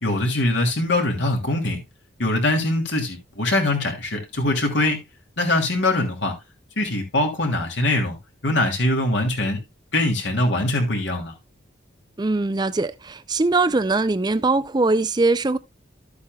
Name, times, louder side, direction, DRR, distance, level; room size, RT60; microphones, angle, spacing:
voice 1, 0.0-1.8 2.2-5.0 5.4-6.3 6.8-8.1 8.4-9.6 9.9-11.3, left 2 dB, 65° left, 2.8 m, -22 dB
voice 2, 12.2-15.6, right 3 dB, 20° right, 0.4 m, -21 dB
12.5 x 8.2 x 2.3 m
head